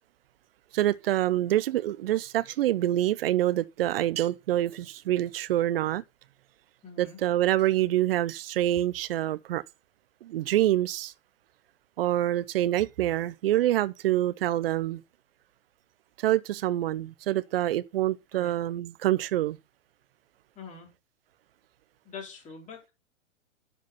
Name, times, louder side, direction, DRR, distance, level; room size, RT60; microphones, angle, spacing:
voice 1, 0.7-6.0 7.0-9.6 10.2-11.1 12.0-15.0 16.2-19.6, right 13 dB, 50° right, 0.8 m, -26 dB
voice 2, 6.8-7.2 18.3-18.5 20.6-20.9 22.0-22.9, left 5 dB, 20° left, 4.1 m, -44 dB
11.0 x 5.0 x 5.5 m
figure-of-eight pair, 120°, 38 cm